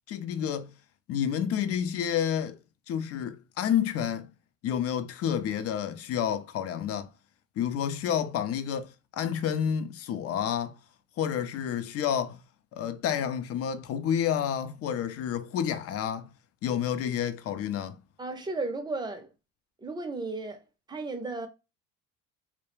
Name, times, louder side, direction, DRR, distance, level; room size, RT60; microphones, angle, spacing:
voice 1, 0.1-0.7 1.1-2.6 2.9-4.3 4.6-7.1 7.6-10.8 11.2-12.4 12.7-16.3 16.6-18.0, left 9 dB, 50° left, 0.4 m, -29 dB
voice 2, 18.2-19.3 19.8-20.6 20.9-21.5, right 3 dB, 15° right, 0.5 m, -34 dB
2.3 x 2.0 x 3.0 m
cardioid pair, 100°, 31 cm